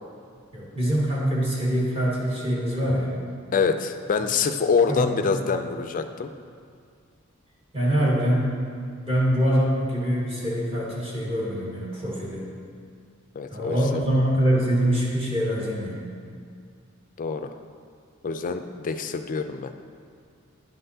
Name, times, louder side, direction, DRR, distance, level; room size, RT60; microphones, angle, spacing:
voice 1, 0.5-3.1 4.9-5.3 7.7-8.5 9.0-12.4 13.5-16.0, equal, 25° right, -6 dB, 1.5 m, -24 dB
voice 2, 3.5-6.3 7.9-8.1 13.3-14.0 17.2-17.5 18.2-19.7, left 5 dB, 40° left, 8 dB, 0.4 m, -26 dB
10.5 x 5.7 x 2.7 m, 2.2 s
head